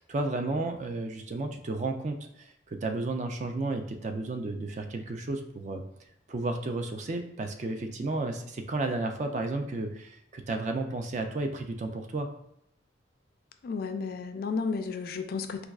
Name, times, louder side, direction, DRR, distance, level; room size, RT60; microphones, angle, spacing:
voice 1, 0.1-5.8 6.3-12.3, right 2 dB, 40° right, 5 dB, 0.3 m, -32 dB
voice 2, 13.6-15.6, left 4 dB, 55° left, 7 dB, 0.3 m, -32 dB
4.6 x 2.3 x 2.3 m, 0.76 s
head